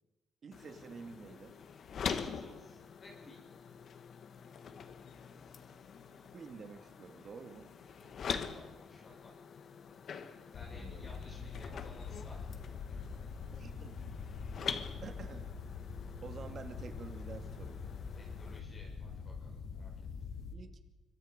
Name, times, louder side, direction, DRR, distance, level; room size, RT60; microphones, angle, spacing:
voice 1, 0.4-1.6 6.3-7.7 10.7-11.1 13.5-14.1 15.0-15.5 16.2-17.9 20.5-20.8, right 5 dB, 40° right, 6 dB, 2.5 m, -49 dB
sound 1, 0.5-18.6, left 6 dB, 50° left, 1.8 m, -45 dB
voice 2, 2.0-3.4 7.8-9.4 10.5-12.4 12.7-13.4 18.1-19.9, left 2 dB, 30° left, -3 dB, 6.0 m, -57 dB
sound 2, 10.5-20.5, left 5 dB, 75° left, 3.4 m, -44 dB
26.0 x 24.5 x 5.3 m, 1.1 s
cardioid pair, 145°, 0 cm